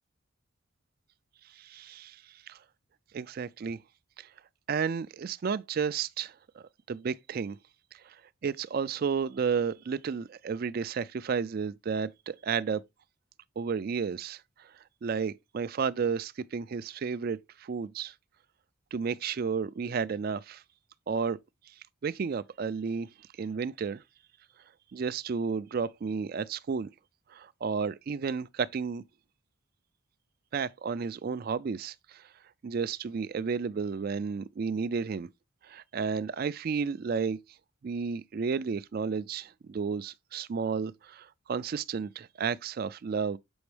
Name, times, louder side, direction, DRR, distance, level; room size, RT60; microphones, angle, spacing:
voice 1, 1.5-2.6 3.1-3.8 4.2-4.3 4.7-7.6 7.9-8.2 8.4-12.8 13.6-14.7 15.0-18.1 18.9-20.6 21.1-21.4 21.7-21.8 22.0-23.1 23.4-24.0 24.9-26.9 27.3-29.0 30.5-32.3 32.6-35.3 35.6-37.4 37.8-43.4, right 5 dB, 45° right, 0.3 m, -32 dB
7.0 x 5.2 x 3.3 m
head